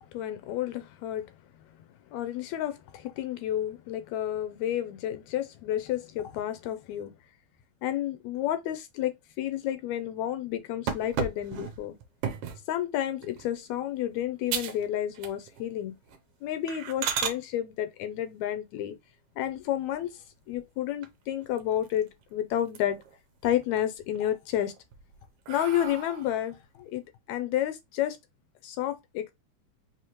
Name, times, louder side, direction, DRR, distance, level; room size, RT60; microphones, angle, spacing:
voice 1, 0.1-1.3 2.1-7.1 7.8-12.0 12.7-15.9 16.4-19.0 19.4-20.2 20.5-23.0 23.4-24.7 25.5-27.0 27.3-28.2 28.6-29.3, left 11 dB, 80° left, 1.8 m, -31 dB
sound 1, 10.9-12.7 13.2-13.5 14.0-14.1 14.5-14.8 15.1-15.7 16.0-16.2 16.7-17.4 19.4-20.1 20.5-20.6 21.0-21.1 21.4-22.2 22.6-23.2 23.6-24.2 24.7-26.4, right 7 dB, 75° right, 1.4 m, -35 dB
4.9 x 3.1 x 2.9 m
omnidirectional pair, 3.4 m